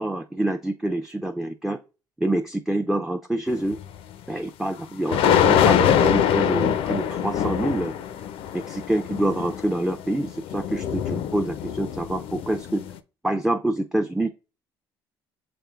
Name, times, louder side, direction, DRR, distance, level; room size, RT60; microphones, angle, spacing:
voice 1, 0.0-1.8 2.2-3.8 4.3-8.0 8.5-12.8 13.2-14.3, right 1 dB, 5° right, 5 dB, 0.4 m, -26 dB
sound 1, 3.7-3.8 5.1-13.0, left 9 dB, 65° left, 0.4 m, -24 dB
6.8 x 2.9 x 2.3 m, 0.32 s
hypercardioid pair, 65°, 10 cm